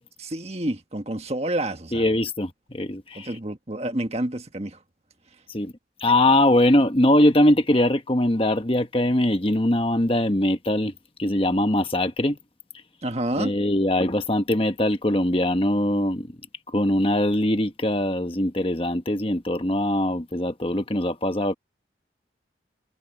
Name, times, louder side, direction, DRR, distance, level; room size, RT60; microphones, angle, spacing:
voice 1, 0.2-2.2 3.1-4.8 13.0-13.6, right 1 dB, 35° right, 1.6 m, -29 dB
voice 2, 1.9-3.3 5.5-5.7 6.0-10.9 11.2-12.4 13.4-16.3 16.7-21.5, left 1 dB, 30° left, 1.3 m, -22 dB
head